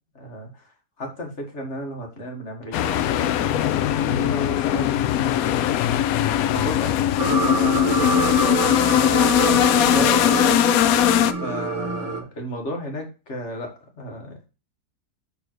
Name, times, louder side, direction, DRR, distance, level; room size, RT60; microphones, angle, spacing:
voice 1, 0.2-5.7 6.5-7.0 7.4-10.6 11.4-14.4, equal, 45° left, 2 dB, 1.9 m, -33 dB
sound 1, 2.7-11.3, left 11 dB, 70° left, 1.0 m, -20 dB
sound 2, 7.2-12.2, right 4 dB, 55° right, 1.3 m, -26 dB
6.7 x 3.9 x 4.5 m, 0.31 s
omnidirectional pair, 1.7 m